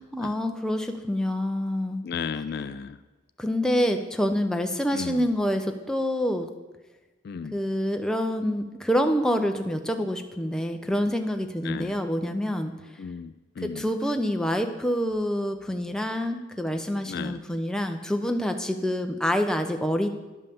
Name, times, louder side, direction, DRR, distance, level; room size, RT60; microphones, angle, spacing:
voice 1, 0.0-2.0 3.4-6.5 7.5-13.0 13.6-20.1, equal, 5° left, 5 dB, 0.5 m, -27 dB
voice 2, 2.0-3.0 4.9-5.3 7.2-7.6 11.6-12.0 13.0-13.8 17.1-17.4, left 6 dB, 50° left, 13 dB, 0.3 m, -34 dB
10.5 x 5.5 x 6.9 m, 1.2 s
head